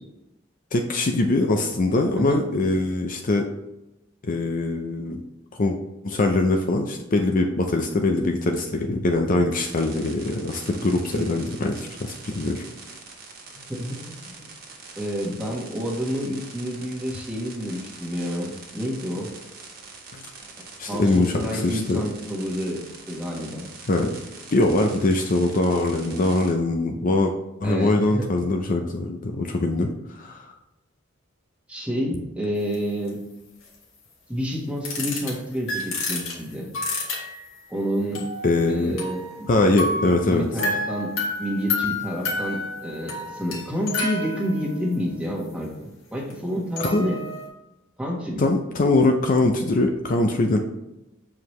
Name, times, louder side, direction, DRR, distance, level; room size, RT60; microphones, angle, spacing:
voice 1, 0.7-3.5 4.2-5.2 5.6-5.8 6.0-12.6 20.1-20.3 20.8-22.0 23.9-24.1 24.5-27.3 27.6-30.5 38.4-39.0 39.5-40.4 46.8-47.1 48.4-50.6, left 2 dB, 40° left, 4 dB, 0.5 m, -22 dB
sound 1, 9.6-26.5, right 4 dB, 45° right, 1.4 m, -43 dB
voice 2, 13.5-14.0 14.4-14.5 15.0-19.3 20.6-22.8 23.1-23.7 27.6-28.2 31.7-33.2 34.3-36.7 37.7-38.2 38.7-39.5 39.8-41.1 41.4-47.2 48.0-48.5, equal, 5° right, -2 dB, 1.4 m, -29 dB
sound 2, 32.7-32.8 33.1-33.2 34.8-35.3 35.7-37.6 38.1-39.5 39.8-44.9 46.3-46.4 46.8-47.5, left 2 dB, 80° left, 1.8 m, -30 dB
7.2 x 4.7 x 3.1 m, 0.94 s
head